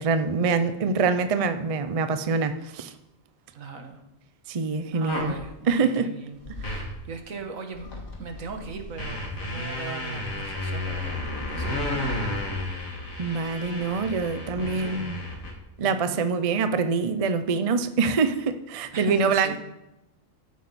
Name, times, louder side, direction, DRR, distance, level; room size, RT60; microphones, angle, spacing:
voice 1, 0.0-2.9 4.5-5.3 5.7-6.1 6.6-6.8 13.2-15.2 15.8-19.6, right 5 dB, 40° right, 0.5 m, -25 dB
voice 2, 3.6-4.0 4.9-7.9 8.2-12.1 14.3-15.1 15.8-16.3 18.9-19.6, right 4 dB, 80° right, 1.7 m, -39 dB
sound 1, 5.1-5.4 6.4-7.0 7.4-7.5 7.7-15.5, left 2 dB, 85° left, 2.6 m, -32 dB
14.0 x 8.9 x 4.2 m
omnidirectional pair, 1.4 m